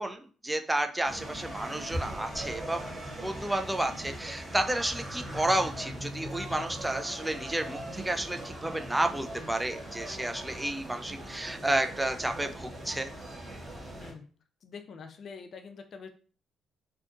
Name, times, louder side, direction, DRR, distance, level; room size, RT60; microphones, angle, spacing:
voice 1, 0.0-2.8 3.2-13.1, right 1 dB, 10° right, 7 dB, 0.3 m, -31 dB
sound 1, 1.0-14.1, right 1 dB, 30° right, 1.2 m, -40 dB
voice 2, 14.6-16.1, left 5 dB, 55° left, 7 dB, 0.4 m, -45 dB
2.7 x 2.3 x 2.5 m, 0.41 s
cardioid pair, 90°, 0 cm